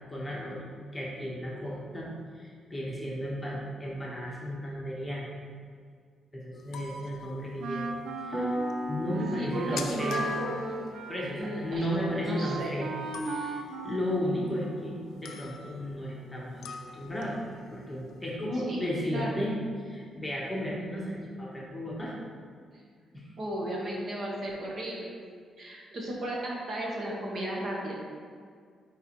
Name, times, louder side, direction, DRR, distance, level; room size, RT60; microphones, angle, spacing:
voice 1, 0.1-0.6 0.9-2.1 2.3-5.3 6.3-8.6 8.9-10.2 11.1-12.9 13.2-16.7 16.9-17.4 17.7-22.1 23.1-23.3, equal, 10° left, -5 dB, 1.1 m, -34 dB
sound 1, 6.6-8.0 8.3-8.4 8.7-8.8 9.0-9.1 9.2-12.6 13.1-14.9 15.2-16.0 16.6-18.3, left 6 dB, 80° left, 0.4 m, -44 dB
Wind instrument woodwind instrument, 7.6-14.8, right 4 dB, 80° right, 0.5 m, -37 dB
Piano, 8.3-18.7, equal, 15° right, 1.6 m, -41 dB
voice 2, 9.4-10.9 11.4-12.8 18.6-19.4 22.7-22.8 23.4-25.1 25.6-27.9, right 1 dB, 40° right, -3 dB, 1.1 m, -35 dB
9.2 x 4.0 x 3.0 m, 2.1 s
cardioid pair, 160°, 0 cm